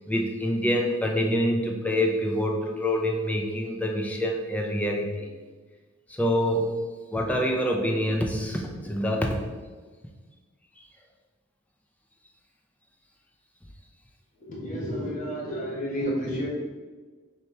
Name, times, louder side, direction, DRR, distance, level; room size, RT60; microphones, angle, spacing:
voice 1, 0.1-5.3 6.1-6.7 7.1-9.4, equal, 5° left, 1 dB, 0.4 m, -26 dB
voice 2, 14.4-16.5, equal, 40° left, -5 dB, 1.2 m, -31 dB
4.3 x 2.9 x 3.3 m, 1.4 s
head